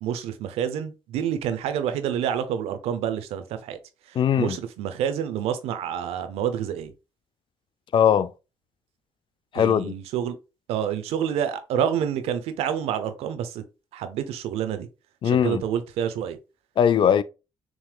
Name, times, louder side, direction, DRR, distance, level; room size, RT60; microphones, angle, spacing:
voice 1, 0.0-3.8 4.1-6.9 9.5-10.4 10.7-13.6 13.9-14.9 15.2-16.4, right 9 dB, 80° right, 0.6 m, -28 dB
voice 2, 4.2-4.6 7.9-8.3 9.5-9.9 15.2-15.6 16.8-17.2, left 8 dB, 55° left, 0.4 m, -20 dB
6.1 x 3.2 x 2.3 m
supercardioid pair, 60°, 10 cm